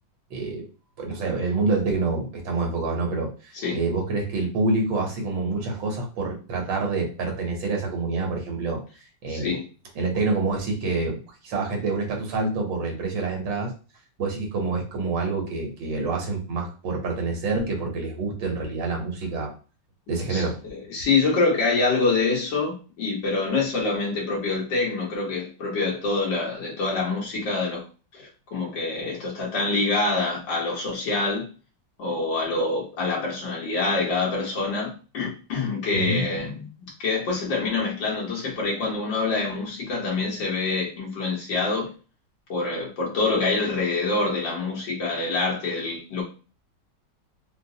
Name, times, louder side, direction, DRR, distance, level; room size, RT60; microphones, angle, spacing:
voice 1, 0.3-0.7 1.0-8.8 9.2-9.6 9.9-13.7 14.2-19.5 20.1-20.6 35.9-36.3, right 3 dB, 80° right, 1.6 m, -27 dB
voice 2, 9.3-9.7 20.3-27.9 28.1-31.5 32.0-36.7 37.0-41.9 42.5-46.2, left 3 dB, 85° left, 1.9 m, -26 dB
4.4 x 2.0 x 2.7 m
omnidirectional pair, 2.0 m